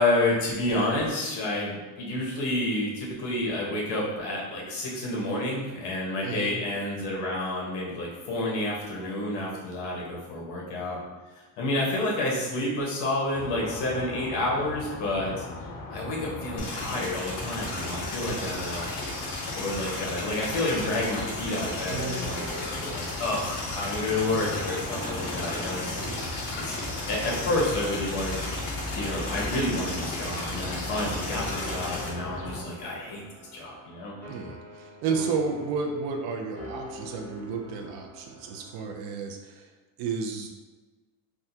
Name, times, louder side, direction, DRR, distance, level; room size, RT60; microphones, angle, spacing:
voice 1, 0.0-11.0 11.3-15.4 15.9-18.9 19.5-26.0 26.6-26.7 27.1-28.5 28.9-33.2 33.5-34.1, left 1 dB, 65° left, -3 dB, 1.2 m, -29 dB
sound 1, 13.3-32.6, left 3 dB, 30° left, 0.4 m, -38 dB
sound 2, 16.6-32.1, left 2 dB, 50° left, 0.8 m, -35 dB
voice 2, 18.3-18.6 21.9-22.2 26.0-26.2 26.7-27.0 34.3-39.7 40.0-40.5, right 5 dB, 60° right, 2 dB, 0.5 m, -32 dB
sound 3, 21.0-39.0, equal, 5° left, 0.9 m, -45 dB
3.5 x 2.2 x 2.7 m, 1.3 s
cardioid pair, 160°, 42 cm